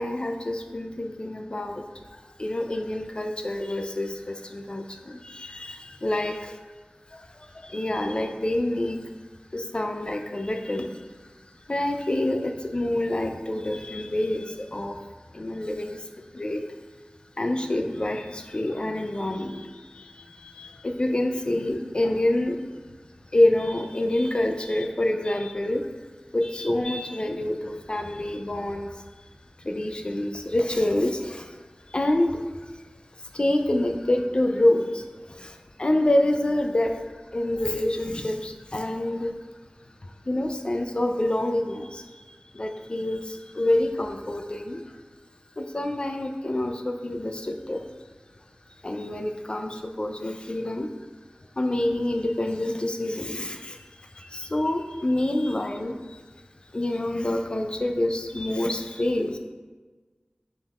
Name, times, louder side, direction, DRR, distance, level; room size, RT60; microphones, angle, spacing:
voice 1, 0.0-1.8 2.1-6.5 7.1-9.1 9.5-15.1 15.3-16.8 17.4-22.8 23.2-25.9 26.3-29.3 29.6-39.5 39.8-45.0 45.6-48.0 48.7-50.9 51.5-56.2 56.6-59.4, left 1 dB, 35° left, 5 dB, 0.3 m, -27 dB
5.1 x 3.4 x 2.3 m, 1.3 s
wide cardioid pair, 60°, 3 cm